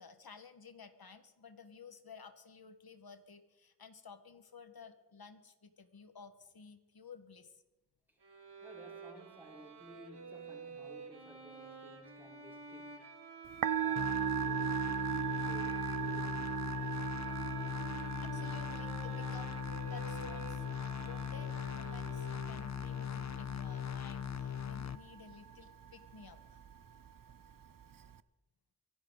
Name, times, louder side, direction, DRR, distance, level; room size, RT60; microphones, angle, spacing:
voice 1, 0.0-7.6 18.2-19.6 19.9-20.6 21.0-26.6, left 5 dB, 60° left, 1.6 m, -54 dB
Bowed string instrument, 8.2-22.9, right 4 dB, 75° right, 2.4 m, -51 dB
voice 2, 8.6-13.1 13.8-16.7, equal, 5° right, 4.8 m, -56 dB
Musical instrument, 13.4-28.2, right 9 dB, 50° right, 0.7 m, -40 dB
sound 1, 14.0-25.0, left 9 dB, 40° left, 0.6 m, -40 dB
24.0 x 11.5 x 3.9 m
cardioid pair, 50°, 41 cm